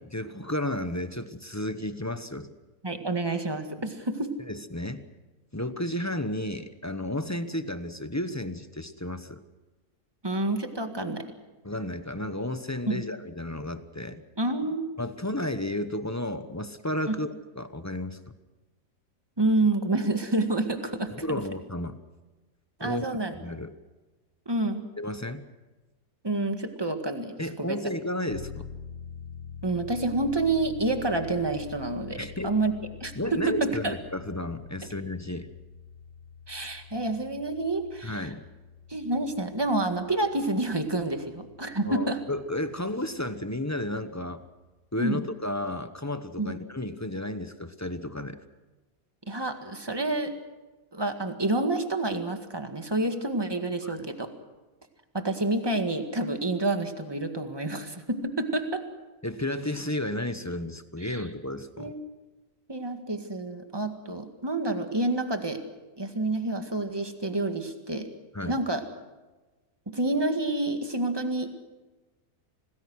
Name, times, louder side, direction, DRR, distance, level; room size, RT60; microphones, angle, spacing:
voice 1, 0.0-2.5 4.5-5.0 5.5-9.4 11.6-14.2 15.0-17.3 17.6-18.2 21.1-22.0 22.8-23.7 25.0-25.5 27.4-28.7 32.2-32.5 33.1-35.5 38.0-38.4 41.8-44.4 44.9-48.4 53.8-54.0 59.2-61.9 68.3-68.6, left 1 dB, 15° left, 10 dB, 0.7 m, -32 dB
voice 2, 2.8-4.3 10.2-11.2 12.9-13.0 14.4-14.9 17.1-17.2 19.4-21.1 22.8-23.3 24.4-24.9 26.2-27.9 29.6-32.7 33.0-33.9 36.5-38.3 38.9-42.2 45.0-45.2 46.4-46.6 49.3-50.3 50.9-54.3 55.1-58.8 61.0-61.2 61.8-62.0 62.7-65.6 66.0-68.1 68.5-68.8 69.9-71.5, right 2 dB, 15° right, 6 dB, 1.8 m, -28 dB
sound 1, 28.3-44.6, left 7 dB, 60° left, 1.9 m, -46 dB
26.5 x 19.5 x 6.3 m, 1.2 s
omnidirectional pair, 1.7 m